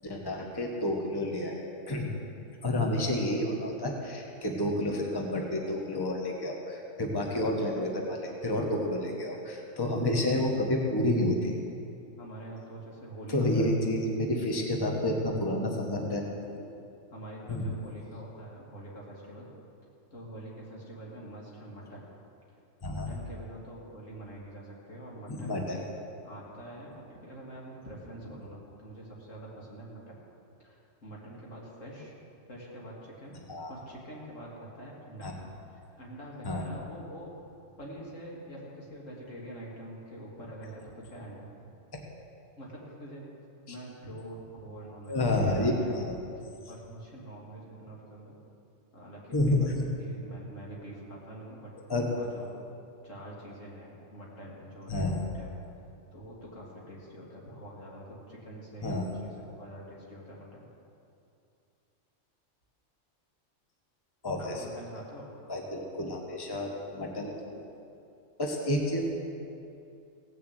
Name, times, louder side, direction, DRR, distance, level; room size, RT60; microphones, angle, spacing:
voice 1, 0.0-2.1 2.6-11.5 13.3-16.6 17.5-17.7 22.8-23.1 25.3-25.8 33.5-33.7 35.2-35.3 36.4-36.7 41.9-42.0 45.1-46.1 49.3-49.8 51.9-52.1 54.9-55.2 58.8-59.0 64.2-64.6 65.5-67.6 68.4-69.0, left 1 dB, 20° left, 0 dB, 1.4 m, -30 dB
voice 2, 12.2-13.8 17.1-19.5 20.1-22.1 22.8-25.9 26.2-30.2 30.6-32.1 32.5-33.4 33.7-37.3 37.8-41.7 42.6-43.2 43.7-46.1 46.7-48.3 48.9-51.7 52.2-52.5 53.0-55.1 55.3-55.5 56.1-60.6 64.3-65.3, right 1 dB, 80° left, -4 dB, 3.0 m, -45 dB
17.0 x 6.9 x 8.2 m, 2.6 s
omnidirectional pair, 1.3 m